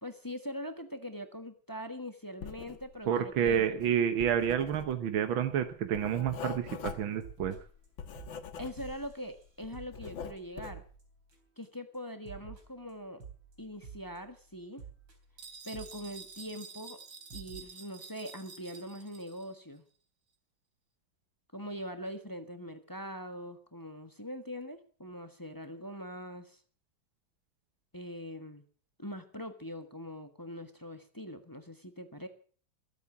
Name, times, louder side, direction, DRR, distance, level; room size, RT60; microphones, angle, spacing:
voice 1, 0.0-3.6 8.6-10.8 11.6-13.2 13.6-14.8 15.6-17.0 17.3-19.8 21.5-26.6 27.9-28.6 29.0-32.3, equal, 10° left, 8 dB, 1.2 m, -42 dB
Writing, 2.4-3.1 3.3-9.1 9.5-10.9, left 7 dB, 85° left, 2.2 m, -43 dB
voice 2, 3.1-7.6, right 9 dB, 90° right, 9 dB, 1.9 m, -29 dB
sound 1, 6.9-7.0 7.2-7.9 8.1-11.7 11.9-16.7 17.0-17.1 17.3-17.6, right 6 dB, 70° right, 4.4 m, -51 dB
sound 2, 15.4-19.5, right 5 dB, 55° right, 2.5 m, -49 dB
22.0 x 8.3 x 7.2 m, 0.43 s
omnidirectional pair, 2.1 m